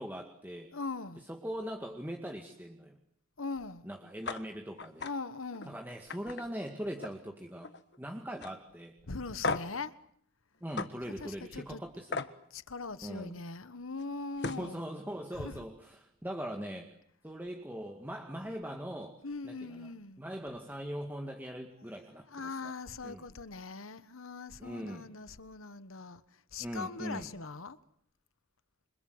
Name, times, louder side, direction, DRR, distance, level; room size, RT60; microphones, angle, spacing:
voice 1, 0.0-0.7 1.3-3.0 3.8-5.1 5.7-7.7 8.0-8.9 10.6-12.2 13.0-13.4 14.4-16.9 17.2-19.2 19.4-19.9 20.2-22.7 23.0-23.2 24.6-25.1 26.6-27.3, equal, 10° right, 2.0 m, -41 dB
voice 2, 0.7-1.2 3.4-3.9 5.0-5.8 9.0-9.9 11.2-11.8 12.5-14.8 15.4-15.7 19.2-20.2 22.3-27.8, left 3 dB, 80° left, 1.4 m, -41 dB
sound 1, 4.2-4.4 4.8-5.1 5.5-5.7 6.1-7.3 7.6-8.0 8.4-8.5 9.4-9.8 10.8-10.9 12.1-12.3 14.0-14.1 14.4-14.7, left 4 dB, 55° left, 1.4 m, -36 dB
27.5 x 26.5 x 8.0 m
head